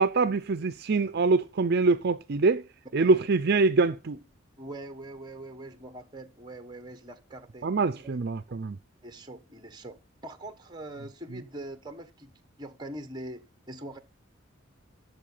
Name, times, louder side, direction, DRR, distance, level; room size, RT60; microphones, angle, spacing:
voice 1, 0.0-2.6 2.9-4.2 7.6-8.8, right 3 dB, 50° right, 0.5 m, -24 dB
voice 2, 3.0-3.3 4.6-7.7 8.0-8.2 9.0-12.3 12.6-14.0, right 1 dB, 20° right, 1.3 m, -43 dB
12.5 x 7.1 x 5.6 m
head